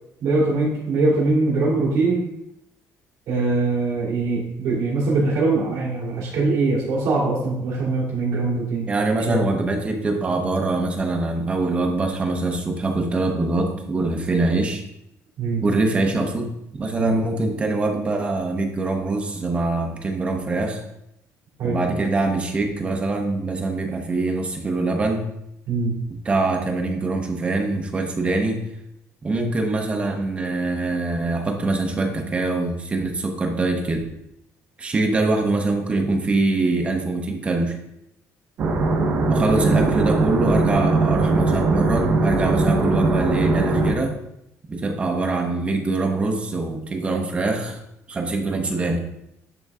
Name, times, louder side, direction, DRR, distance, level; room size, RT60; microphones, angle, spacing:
voice 1, 0.2-2.3 3.3-8.9 9.3-9.4 15.4-15.6 17.0-17.2 21.6-21.8 25.7-26.0, right 3 dB, 65° right, -5 dB, 2.9 m, -22 dB
voice 2, 8.9-14.8 15.6-20.8 21.6-25.2 26.1-28.6 29.2-34.1 34.8-37.8 39.3-44.1 44.7-47.8 48.1-49.0, right 2 dB, 20° right, 3 dB, 0.8 m, -23 dB
sound 1, 38.6-43.9, right 3 dB, 45° right, 1.0 m, -20 dB
11.0 x 3.9 x 3.6 m, 0.80 s
cardioid pair, 175°, 6 cm